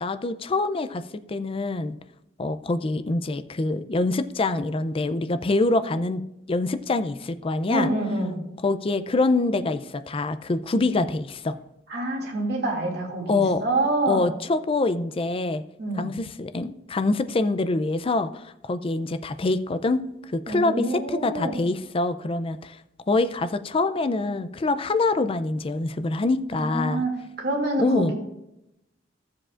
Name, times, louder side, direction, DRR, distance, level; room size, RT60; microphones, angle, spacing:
voice 1, 0.0-1.0 1.3-2.0 2.4-6.2 6.5-7.9 8.6-11.5 13.3-13.6 14.1-15.6 16.0-20.0 20.3-22.8 23.1-27.0 27.8-28.1, left 2 dB, 30° left, 11 dB, 0.4 m, -25 dB
voice 2, 7.7-8.4 11.9-14.3 15.8-16.1 20.5-21.6 26.5-28.1, right 1 dB, 60° right, 0 dB, 2.4 m, -27 dB
14.5 x 7.5 x 2.5 m, 0.87 s
head